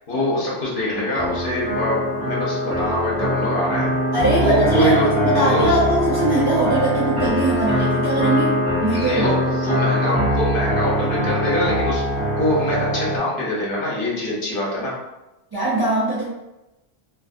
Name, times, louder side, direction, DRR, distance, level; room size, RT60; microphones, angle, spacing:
voice 1, 0.0-3.9 4.4-5.7 8.9-12.0 12.4-14.9, left 1 dB, 55° left, -5 dB, 1.0 m, -24 dB
sound 1, 1.1-13.2, equal, 5° right, 0.8 m, -22 dB
voice 2, 4.1-9.3 15.5-16.2, right 1 dB, 30° right, -9 dB, 0.5 m, -21 dB
2.6 x 2.5 x 2.4 m, 0.97 s
omnidirectional pair, 1.1 m